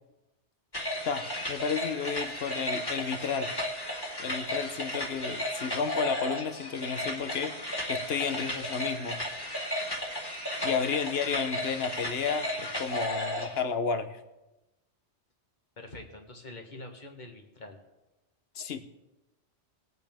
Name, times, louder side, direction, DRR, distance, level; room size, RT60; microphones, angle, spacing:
sound 1, 0.7-13.6, left 1 dB, 20° left, 1.9 m, -34 dB
voice 1, 1.0-3.5 4.2-7.5 7.9-9.2 10.6-14.2 18.6-18.8, left 6 dB, 60° left, 9 dB, 1.1 m, -32 dB
voice 2, 10.6-11.0 15.8-17.8, left 2 dB, 40° left, 3 dB, 1.6 m, -45 dB
21.0 x 8.2 x 3.6 m, 0.99 s
omnidirectional pair, 1.2 m